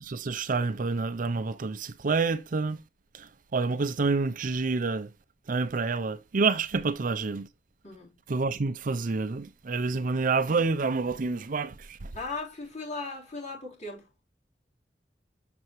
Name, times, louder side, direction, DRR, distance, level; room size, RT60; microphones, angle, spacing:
voice 1, 0.0-2.8 3.1-5.1 5.5-7.5 8.3-12.1, right 4 dB, 50° right, 0.5 m, -28 dB
voice 2, 7.8-8.2 12.1-14.1, left 3 dB, 40° left, 3.7 m, -37 dB
7.0 x 6.5 x 3.1 m
head